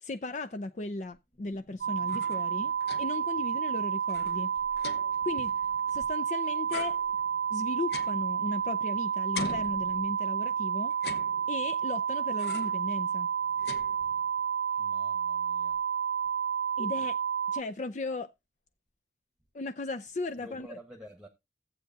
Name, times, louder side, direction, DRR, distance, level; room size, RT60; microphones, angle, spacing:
voice 1, 0.0-4.5 5.2-5.5 5.9-7.0 7.5-10.9 11.5-13.3 16.8-17.2 17.5-18.3 19.5-20.8, left 3 dB, 40° left, 0.5 m, -36 dB
sound 1, 1.8-17.6, right 8 dB, 60° right, 0.4 m, -30 dB
sound 2, 1.9-3.3 3.7-3.8 4.0-6.3 6.7-8.9 9.3-10.4 10.9-11.8 12.4-12.9 13.2-14.4, left 4 dB, 60° left, 1.0 m, -43 dB
voice 2, 14.8-15.8 20.4-21.3, right 1 dB, 5° right, 1.2 m, -49 dB
14.5 x 7.9 x 2.7 m
head